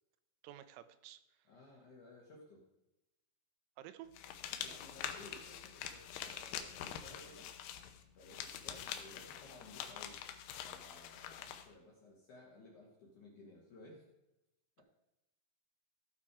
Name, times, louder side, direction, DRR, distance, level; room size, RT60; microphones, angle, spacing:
voice 1, 0.4-1.2 3.8-4.1, right 12 dB, 85° right, 11 dB, 3.3 m, -51 dB
voice 2, 1.5-2.6 4.5-7.5 8.2-10.2 10.6-14.0, left 2 dB, 60° left, -3 dB, 2.1 m, -57 dB
sound 1, 4.1-11.7, left 9 dB, 85° left, 2.3 m, -45 dB
15.5 x 5.9 x 4.9 m, 0.95 s
omnidirectional pair, 5.7 m